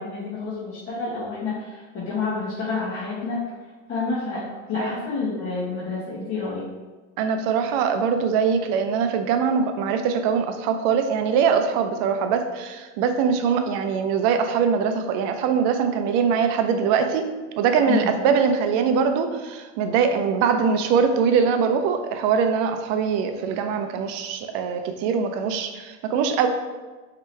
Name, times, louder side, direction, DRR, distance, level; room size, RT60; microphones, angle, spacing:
voice 1, 0.0-3.4 3.9-4.4 4.7-6.6 17.9-18.1, left 4 dB, 35° left, -10 dB, 1.2 m, -29 dB
voice 2, 7.2-17.3 17.6-26.5, right 6 dB, 50° right, 7 dB, 0.5 m, -22 dB
4.5 x 2.9 x 3.2 m, 1.3 s
supercardioid pair, 120°, 38 cm